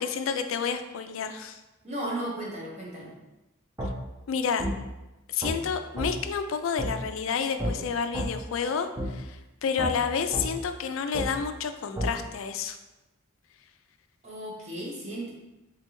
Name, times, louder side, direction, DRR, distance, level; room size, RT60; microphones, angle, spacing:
voice 1, 0.0-1.6 4.3-4.7 5.3-12.8, left 6 dB, 75° left, 8 dB, 0.4 m, -30 dB
voice 2, 1.8-3.1 14.2-15.3, right 1 dB, 35° right, -4 dB, 1.0 m, -35 dB
sound 1, 3.8-3.9 4.6-4.7 5.4-5.6 6.0-6.1 6.8-6.9 7.6-7.7 8.1-8.3 9.0-9.1 9.8-9.9 10.3-10.5 11.1-11.3 12.0-12.1, equal, 15° right, 0.6 m, -29 dB
3.6 x 3.3 x 3.0 m, 1.0 s
head